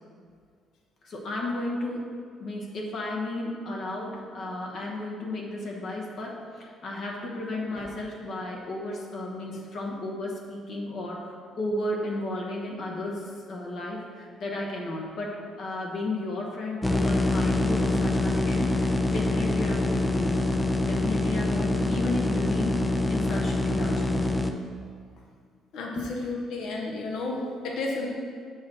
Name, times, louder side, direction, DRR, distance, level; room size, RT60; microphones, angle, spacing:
voice 1, 1.0-2.1 2.4-24.3 26.0-26.1, left 2 dB, 45° left, -1 dB, 1.2 m, -33 dB
sound 1, 16.8-24.5, left 2 dB, 10° left, 0.3 m, -25 dB
voice 2, 25.7-28.1, left 2 dB, 70° left, 0 dB, 1.1 m, -32 dB
6.9 x 6.0 x 3.9 m, 2.1 s
cardioid pair, 165°, 0 cm